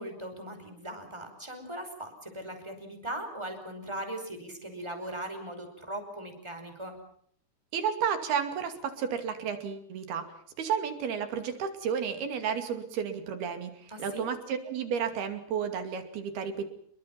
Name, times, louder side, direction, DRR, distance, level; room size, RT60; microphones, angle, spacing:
voice 1, 0.0-7.0 13.9-14.2, right 1 dB, 5° right, 5 dB, 5.0 m, -39 dB
voice 2, 7.7-10.3 10.6-16.7, right 7 dB, 65° right, 8 dB, 4.4 m, -32 dB
27.0 x 23.0 x 5.9 m, 0.62 s
omnidirectional pair, 4.9 m